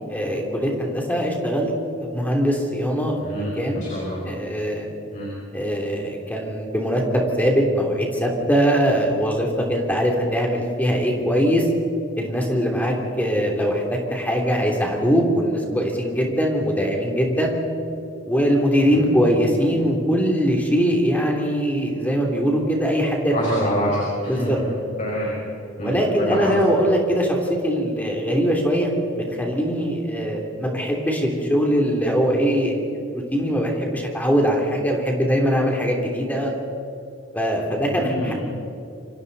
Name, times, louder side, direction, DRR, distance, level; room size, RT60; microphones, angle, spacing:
voice 1, 0.1-1.7 2.0-3.9 4.2-4.8 5.5-11.7 12.2-17.6 18.3-23.7 24.3-24.6 25.8-32.8 33.3-36.5 37.3-38.3, equal, 10° left, 0 dB, 3.1 m, -22 dB
voice 2, 3.2-4.2 5.1-5.3 18.8-19.1 23.3-24.6 25.0-25.3 25.8-26.7 37.7-38.3, equal, 40° left, -4 dB, 5.2 m, -27 dB
28.5 x 25.5 x 4.1 m, 2.8 s
head